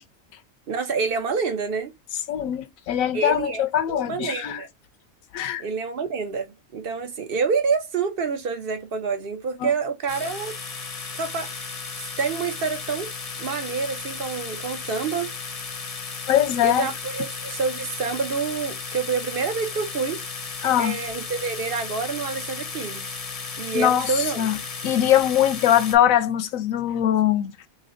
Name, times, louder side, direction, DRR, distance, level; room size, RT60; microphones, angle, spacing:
voice 1, 0.7-1.9 3.1-4.7 5.6-10.5 11.1-11.7 12.2-13.1 13.4-15.3 16.6-20.2 20.8-23.2 23.6-24.5, right 5 dB, 50° right, 0.8 m, -27 dB
voice 2, 2.3-4.6 5.3-5.6 9.6-9.7 16.3-16.9 20.6-21.0 23.7-24.6 24.8-27.7, left 11 dB, 90° left, 1.0 m, -22 dB
sound 1, 10.1-26.0, left 5 dB, 40° left, 0.6 m, -35 dB
3.1 x 2.7 x 3.8 m
omnidirectional pair, 1.4 m